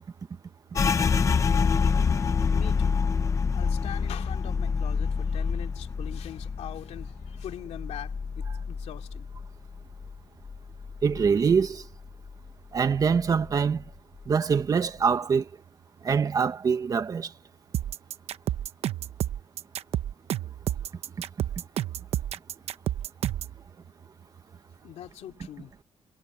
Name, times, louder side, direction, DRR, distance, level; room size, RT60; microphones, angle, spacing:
sound 1, 0.7-10.2 10.4-11.7 12.0-12.5 12.9-13.5, left 5 dB, 30° left, 0.8 m, -27 dB
voice 1, 2.5-3.0 3.5-9.3 24.8-25.7, left 11 dB, 85° left, 2.9 m, -42 dB
voice 2, 11.0-11.8 12.7-13.8 14.3-15.5 16.0-17.3, right 6 dB, 35° right, 1.4 m, -24 dB
sound 2, 17.7-23.6, right 11 dB, 70° right, 0.9 m, -30 dB
cardioid pair, 165°, 11 cm